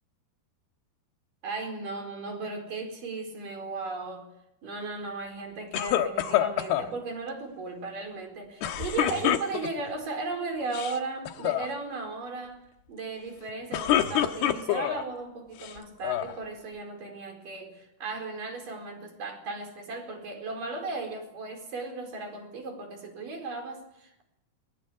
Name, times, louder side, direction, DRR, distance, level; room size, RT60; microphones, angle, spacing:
voice 1, 1.4-4.3 4.6-12.6 12.9-24.2, right 3 dB, 60° right, 4 dB, 6.2 m, -36 dB
sound 1, 5.7-6.9 8.6-9.9 10.6-11.0 11.3-11.7 13.5-15.0 15.6-16.3, left 11 dB, 90° left, 3.3 m, -26 dB
21.5 x 21.5 x 8.7 m, 0.83 s
omnidirectional pair, 4.4 m